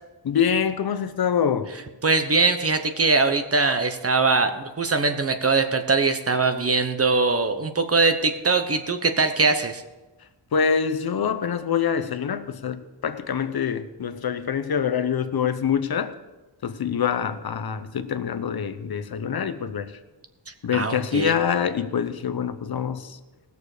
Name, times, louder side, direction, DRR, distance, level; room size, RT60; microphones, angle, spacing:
voice 1, 0.2-1.7 10.5-16.1 16.6-20.0 20.6-23.2, left 7 dB, 50° left, 11 dB, 0.8 m, -25 dB
voice 2, 2.0-9.8 20.7-21.3, right 3 dB, 30° right, 8 dB, 0.9 m, -22 dB
19.0 x 6.8 x 5.0 m, 1.1 s
wide cardioid pair, 145°, 47 cm